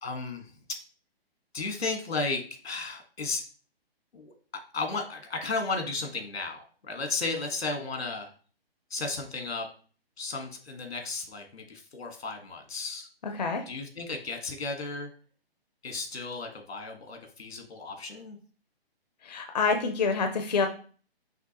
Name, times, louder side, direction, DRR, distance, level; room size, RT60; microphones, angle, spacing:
voice 1, 0.0-0.8 1.5-3.4 4.1-4.3 4.7-8.3 8.9-9.7 10.2-13.1 13.7-15.1 15.8-18.4, left 3 dB, 90° left, 4 dB, 1.5 m, -34 dB
voice 2, 13.2-13.6 19.2-20.7, left 4 dB, 45° left, 5 dB, 0.5 m, -27 dB
6.0 x 2.7 x 2.8 m, 0.40 s
hypercardioid pair, 175°, 31 cm